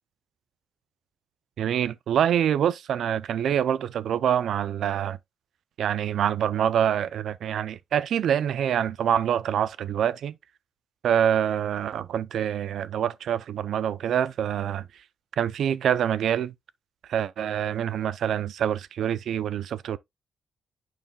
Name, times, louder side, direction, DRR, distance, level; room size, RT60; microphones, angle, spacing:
voice 1, 1.6-5.2 5.8-10.4 11.0-14.9 15.4-16.5 17.1-20.0, right 9 dB, 60° right, 0.5 m, -25 dB
9.0 x 5.4 x 2.3 m
cardioid pair, 165°, 0 cm